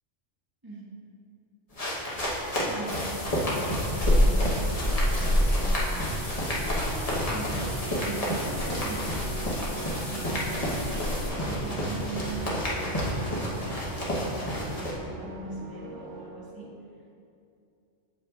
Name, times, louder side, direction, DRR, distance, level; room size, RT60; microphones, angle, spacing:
voice 1, 0.6-0.9 2.6-4.8 5.2-6.1 7.2-14.0 14.7-16.7, right 3 dB, 20° right, -7 dB, 1.4 m, -41 dB
sound 1, 1.7-14.9, equal, 30° left, 1.1 m, -31 dB
sound 2, 2.9-11.3, equal, 65° left, 2.1 m, -29 dB
sound 3, 4.4-16.3, right 4 dB, 40° right, 0.9 m, -43 dB
7.7 x 7.1 x 2.4 m, 2.6 s
omnidirectional pair, 1.3 m